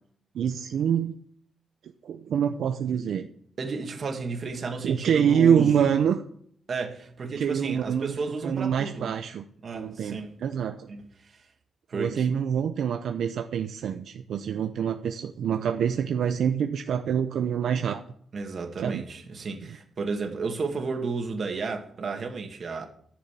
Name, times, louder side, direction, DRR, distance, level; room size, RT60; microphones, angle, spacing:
voice 1, 0.3-1.1 2.0-3.3 4.8-6.2 7.4-8.1 8.4-9.4 9.7-10.9 11.9-18.0 18.8-19.0, right 8 dB, 75° right, 0.8 m, -26 dB
voice 2, 3.6-5.8 6.7-9.2 9.6-10.4 10.9-11.3 11.9-12.3 18.3-22.9, right 4 dB, 45° right, 2.2 m, -33 dB
13.5 x 7.2 x 7.4 m
wide cardioid pair, 130°, 0 cm